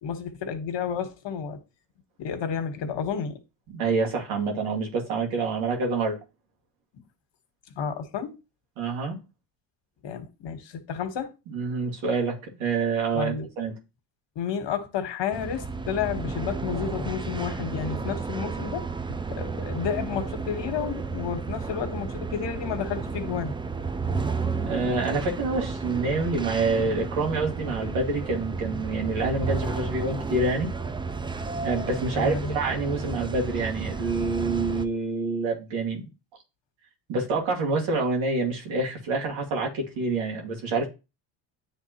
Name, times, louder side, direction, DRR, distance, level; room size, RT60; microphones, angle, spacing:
voice 1, 0.0-1.6 2.2-3.4 7.8-8.3 10.0-11.3 13.1-13.5 14.3-18.9 19.3-23.5 32.1-32.6, left 7 dB, 65° left, 1.4 m, -31 dB
voice 2, 3.7-6.2 8.8-9.2 11.5-13.7 24.7-30.7 31.6-36.1 37.1-40.9, right 3 dB, 85° right, 2.1 m, -27 dB
sound 1, 15.3-34.8, right 4 dB, 10° right, 0.4 m, -32 dB
9.7 x 3.5 x 2.9 m
supercardioid pair, 80°, 47 cm